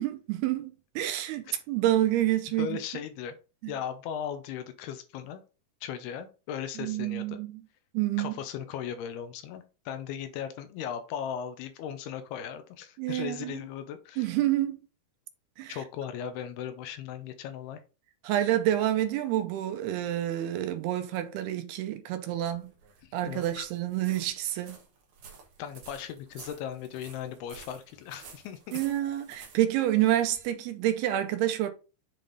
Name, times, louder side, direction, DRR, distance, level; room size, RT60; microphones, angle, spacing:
voice 1, 0.0-2.8 3.6-3.7 6.8-7.6 7.9-8.3 13.0-13.6 14.2-14.8 15.6-15.8 18.2-22.7 23.1-24.8 28.7-31.7, right 13 dB, 80° right, 2.7 m, -28 dB
voice 2, 2.6-3.4 3.7-5.4 5.8-7.4 8.2-14.3 15.7-17.8 23.3-23.7 25.6-28.8, left 9 dB, 80° left, 2.7 m, -37 dB
sound 1, 22.3-30.5, right 6 dB, 60° right, 2.0 m, -52 dB
7.6 x 3.4 x 4.0 m
omnidirectional pair, 4.7 m